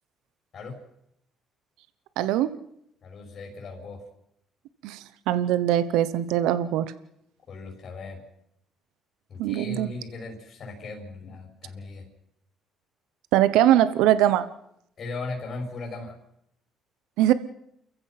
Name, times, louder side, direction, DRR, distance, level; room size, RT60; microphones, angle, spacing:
voice 1, 2.2-2.5 4.8-6.9 9.4-9.9 13.3-14.5 17.2-17.3, right 12 dB, 85° right, 15 dB, 0.9 m, -22 dB
voice 2, 3.0-4.0 7.5-8.2 9.3-12.1 15.0-16.2, left 3 dB, 50° left, 1 dB, 6.1 m, -37 dB
29.0 x 15.0 x 5.9 m, 0.76 s
supercardioid pair, 80°, 0 cm